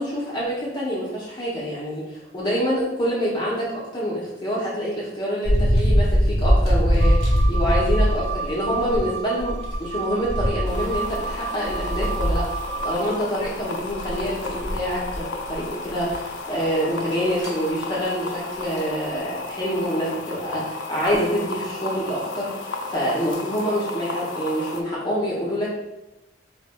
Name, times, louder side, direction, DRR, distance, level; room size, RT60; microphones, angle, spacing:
voice 1, 0.0-12.5 12.8-25.7, equal, 25° left, -6 dB, 0.7 m, -26 dB
sound 1, 5.4-9.0 9.4-13.0 13.4-13.5 13.9-15.2 15.5-15.7 16.1-16.2 17.1-17.6 18.6-18.8 19.6-19.8, equal, 35° right, 1.1 m, -22 dB
sound 2, 7.0-13.0, right 5 dB, 90° right, 0.3 m, -32 dB
sound 3, 10.7-24.8, left 3 dB, 85° left, 0.5 m, -33 dB
4.1 x 3.1 x 2.2 m, 0.96 s
head